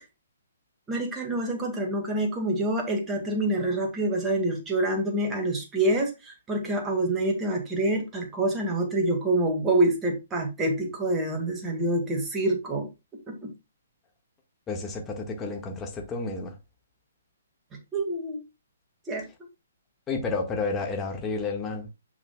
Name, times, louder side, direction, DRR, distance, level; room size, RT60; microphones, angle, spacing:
voice 1, 0.9-12.9 13.3-13.5 17.9-18.4 19.1-19.3, right 1 dB, 15° right, 2.2 m, -26 dB
voice 2, 14.7-16.5 20.1-21.9, left 3 dB, 15° left, 1.8 m, -31 dB
9.4 x 6.3 x 2.4 m
figure-of-eight pair, 130°, 0 cm